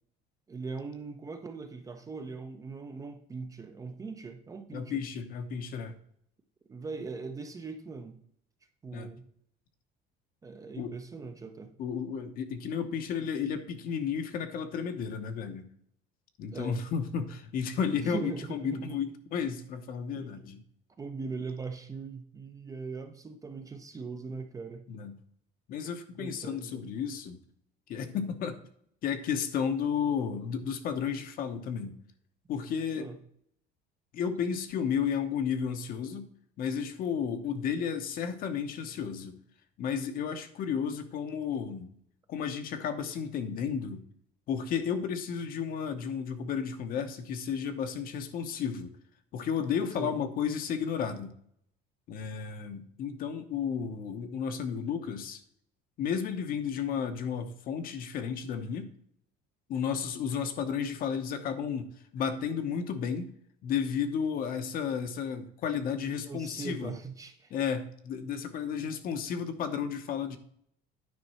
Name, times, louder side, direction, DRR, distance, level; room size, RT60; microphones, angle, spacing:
voice 1, 0.5-5.0 6.7-8.2 8.8-9.3 10.4-11.7 16.5-16.8 18.0-19.0 19.4-19.5 20.1-20.4 21.0-24.9 26.2-26.9 32.9-33.2 50.0-50.2 66.2-67.5, right 4 dB, 15° right, 0.6 m, -40 dB
voice 2, 4.7-6.0 8.9-9.1 10.8-10.9 11.8-15.7 16.4-20.6 24.9-25.2 25.7-27.4 27.9-28.6 29.0-32.0 32.5-33.1 34.1-36.3 36.6-39.3 39.8-41.9 42.3-44.0 44.5-49.0 49.3-51.3 52.1-55.4 56.0-58.9 59.7-61.9 62.1-63.3 63.6-66.9 67.5-70.4, left 7 dB, 50° left, 0.9 m, -33 dB
9.6 x 5.1 x 4.3 m
cardioid pair, 160°, 20 cm